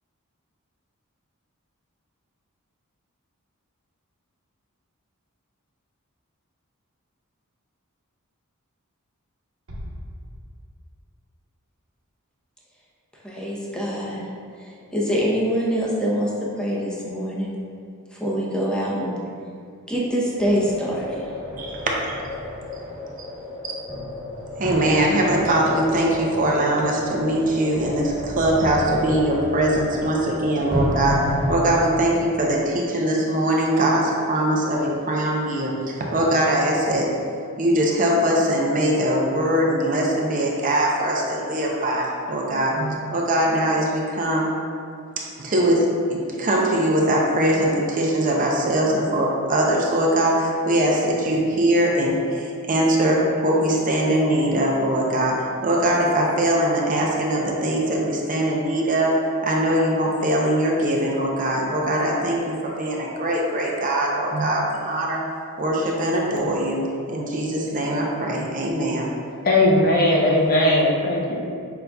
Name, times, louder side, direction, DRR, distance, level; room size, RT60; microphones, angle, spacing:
Bass drum, 9.7-11.1, equal, 65° right, 1.0 m, -39 dB
voice 1, 13.1-14.3 14.6-16.3 16.6-17.5 18.1-19.2 19.9-21.2, equal, 5° left, -5 dB, 0.7 m, -25 dB
sound 1, 20.4-31.7, equal, 15° right, 1.4 m, -31 dB
voice 2, 24.6-37.2 37.6-44.5 45.4-65.2 65.6-69.1, right 1 dB, 40° right, -2 dB, 0.5 m, -22 dB
voice 3, 69.4-71.4, left 1 dB, 40° left, -2 dB, 0.6 m, -18 dB
5.6 x 3.9 x 2.3 m, 2.3 s
head